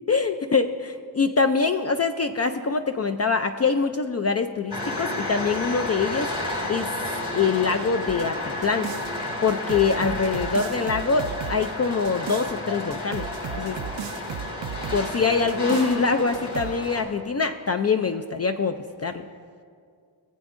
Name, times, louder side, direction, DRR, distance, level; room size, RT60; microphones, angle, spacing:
voice 1, 0.1-6.3 6.7-6.9 7.3-8.4 8.6-8.9 9.4-13.3 13.6-13.8 14.9-19.2, left 5 dB, 35° left, 6 dB, 0.4 m, -24 dB
sound 1, 4.7-17.0, left 2 dB, 55° left, 2.3 m, -31 dB
sound 2, 8.1-9.1 9.5-12.5 12.9-15.1 15.5-16.0 16.3-16.8, right 9 dB, 70° right, 0.5 m, -35 dB
19.5 x 7.9 x 2.5 m, 2.1 s
cardioid pair, 55°, 46 cm